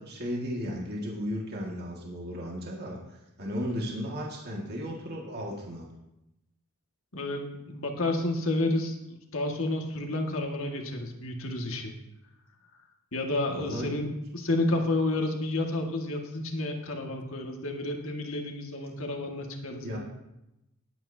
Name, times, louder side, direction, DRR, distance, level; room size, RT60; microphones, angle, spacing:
voice 1, 0.0-5.9 13.5-13.9 19.8-20.0, equal, 45° right, -2 dB, 1.9 m, -35 dB
voice 2, 7.1-11.9 13.1-20.0, left 2 dB, 60° left, 1 dB, 1.9 m, -30 dB
20.0 x 9.0 x 2.8 m, 0.88 s
head